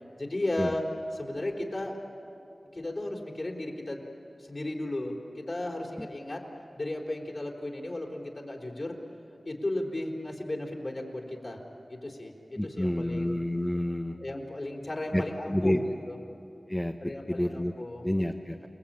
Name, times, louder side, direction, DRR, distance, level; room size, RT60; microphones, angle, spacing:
voice 1, 0.2-0.8 1.2-2.0 2.7-4.1 4.4-6.4 6.8-9.0 9.5-11.6 11.9-13.3 14.2-15.7 17.0-18.0, left 1 dB, 50° left, 0 dB, 4.0 m, -35 dB
voice 2, 12.6-14.2 15.1-15.8 16.7-16.9 17.3-17.7 18.0-18.7, left 1 dB, 15° left, 3 dB, 1.1 m, -29 dB
29.5 x 19.5 x 8.9 m, 2.8 s
wide cardioid pair, 50°, 0 cm